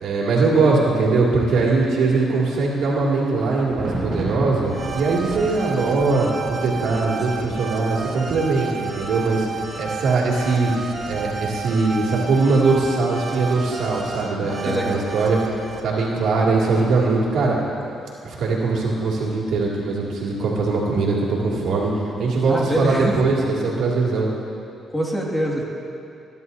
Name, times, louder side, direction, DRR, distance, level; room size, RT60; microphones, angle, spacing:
voice 1, 0.0-9.5 9.8-10.7 11.1-15.4 15.8-17.6 18.2-24.3, right 3 dB, 75° right, -4 dB, 2.5 m, -21 dB
Thunder, 1.9-16.5 16.8-17.1, right 2 dB, 55° right, 2.9 m, -37 dB
sound 1, 4.7-15.8, right 4 dB, 30° right, 1.6 m, -32 dB
voice 2, 14.4-15.1 22.5-23.1 24.9-25.6, equal, 15° left, -3 dB, 2.2 m, -25 dB
21.0 x 10.5 x 2.8 m, 2.6 s
cardioid pair, 90°, 0 cm